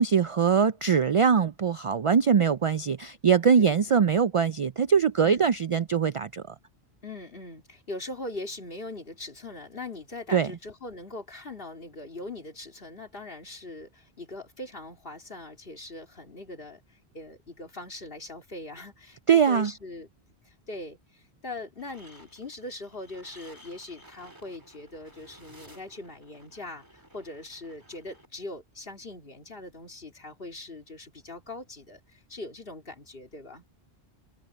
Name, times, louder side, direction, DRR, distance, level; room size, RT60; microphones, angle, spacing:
voice 1, 0.0-6.5 10.3-10.5 19.3-19.7, right 6 dB, 55° right, 0.3 m, -22 dB
voice 2, 3.6-4.0 5.2-5.5 7.0-20.1 20.4-33.6, left 2 dB, 60° left, 3.2 m, -41 dB
sound 1, 21.8-28.3, equal, 20° right, 3.4 m, -55 dB
omnidirectional pair, 1.1 m